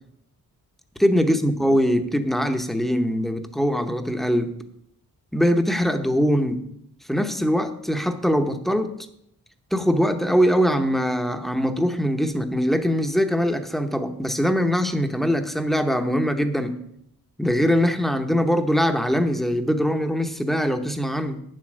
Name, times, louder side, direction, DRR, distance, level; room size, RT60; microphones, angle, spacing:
voice 1, 1.0-4.6 5.3-6.7 7.1-9.0 9.7-16.8 17.4-21.4, equal, ahead, 0.9 m, -22 dB
8.8 x 7.6 x 6.2 m
wide cardioid pair, 100°, 36 cm